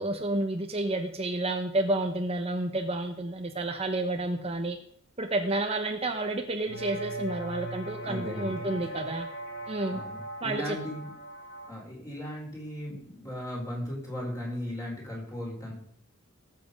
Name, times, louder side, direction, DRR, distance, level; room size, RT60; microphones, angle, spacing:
voice 1, 0.0-4.8 5.2-9.3 9.7-10.0 10.4-10.8, right 2 dB, 30° right, 4 dB, 1.0 m, -30 dB
sound 1, 6.7-11.7, right 1 dB, 55° left, 3.5 m, -38 dB
voice 2, 8.0-9.1 9.9-11.1 11.7-15.7, left 1 dB, 15° left, -2 dB, 4.7 m, -37 dB
18.5 x 7.7 x 5.3 m, 0.66 s
head